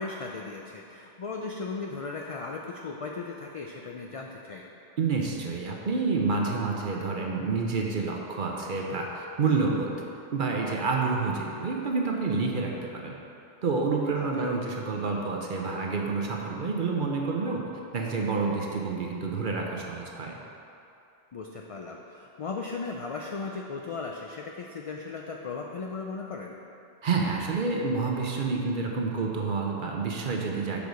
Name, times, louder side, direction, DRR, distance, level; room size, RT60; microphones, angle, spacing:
voice 1, 0.0-4.6 14.2-14.5 21.3-26.5, left 4 dB, 55° left, 0 dB, 0.4 m, -37 dB
voice 2, 5.0-10.0 10.3-13.1 13.6-20.4 27.0-30.8, right 4 dB, 55° right, 0 dB, 0.8 m, -28 dB
6.9 x 4.6 x 5.2 m, 2.7 s
omnidirectional pair, 1.1 m